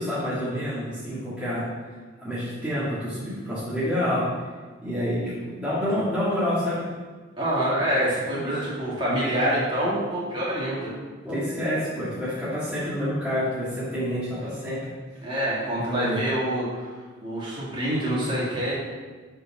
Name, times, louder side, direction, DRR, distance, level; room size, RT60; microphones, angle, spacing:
voice 1, 0.0-1.7 2.2-4.3 4.8-6.8 8.4-8.5 11.2-14.9 15.8-16.2, equal, 5° right, -12 dB, 2.3 m, -28 dB
voice 2, 7.4-10.9 15.2-16.9 17.2-18.7, right 1 dB, 25° right, -8 dB, 2.9 m, -26 dB
9.2 x 4.8 x 6.1 m, 1.4 s
head